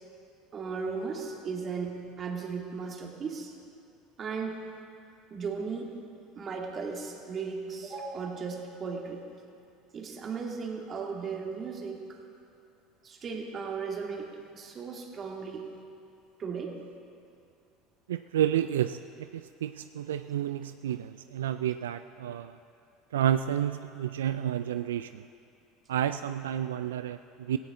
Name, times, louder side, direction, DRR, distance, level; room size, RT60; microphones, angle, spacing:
voice 1, 0.5-3.5 4.2-4.6 5.3-6.0 6.4-9.3 9.9-12.2 13.0-15.7 16.4-16.8, right 5 dB, 40° right, 1 dB, 2.4 m, -36 dB
voice 2, 18.1-22.6 23.1-25.2 25.9-27.6, right 10 dB, 85° right, 10 dB, 0.3 m, -30 dB
17.0 x 16.5 x 3.8 m, 2.5 s
hypercardioid pair, 80°, 0 cm